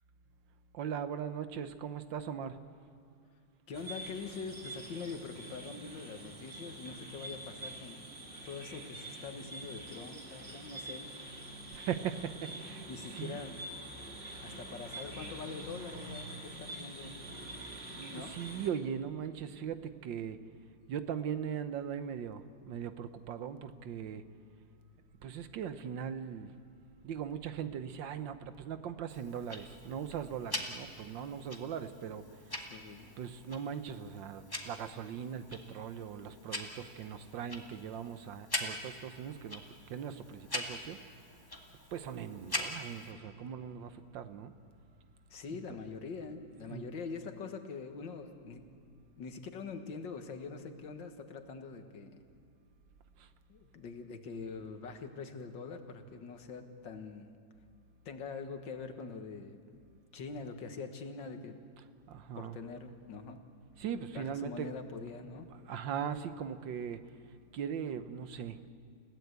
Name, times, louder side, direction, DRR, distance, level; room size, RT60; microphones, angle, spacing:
voice 1, 0.7-2.6 11.7-12.9 13.1-13.4 18.0-20.4 20.9-24.2 25.2-26.5 27.0-32.2 33.2-39.6 39.9-41.0 41.9-44.5 46.7-46.9 62.1-62.6 63.8-64.7 65.3-65.4 65.7-67.0 67.5-68.7, right 8 dB, 80° right, 11 dB, 1.7 m, -39 dB
voice 2, 3.7-8.1 8.5-11.1 12.9-13.6 14.4-17.1 18.1-18.3 32.7-33.1 45.3-48.6 49.2-52.2 53.5-57.4 58.1-59.9 60.1-61.6 62.3-63.4 64.1-65.5, left 4 dB, 80° left, 6 dB, 2.2 m, -44 dB
sound 1, 3.7-18.7, right 1 dB, 35° right, 2.6 m, -46 dB
Tick-tock, 29.1-43.1, left 1 dB, 10° left, 1.8 m, -43 dB
29.5 x 16.5 x 8.2 m, 2.3 s
omnidirectional pair, 2.0 m